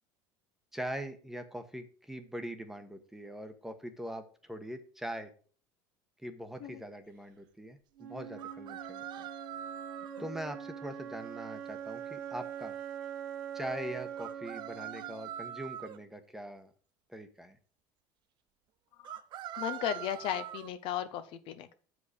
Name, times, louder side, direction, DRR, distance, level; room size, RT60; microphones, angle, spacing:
voice 1, 0.7-5.3 6.2-9.3 10.2-12.8 13.5-16.7 17.1-17.6, right 1 dB, 5° right, 8 dB, 1.1 m, -42 dB
Wind instrument woodwind instrument, 8.0-16.0, right 8 dB, 80° right, 1.2 m, -43 dB
sound 1, 8.4-10.2 14.2-16.0 19.0-20.7, right 11 dB, 45° right, 0.5 m, -43 dB
voice 2, 19.6-21.7, left 10 dB, 60° left, 10 dB, 0.9 m, -35 dB
6.8 x 5.1 x 6.5 m, 0.41 s
supercardioid pair, 115°, 10 cm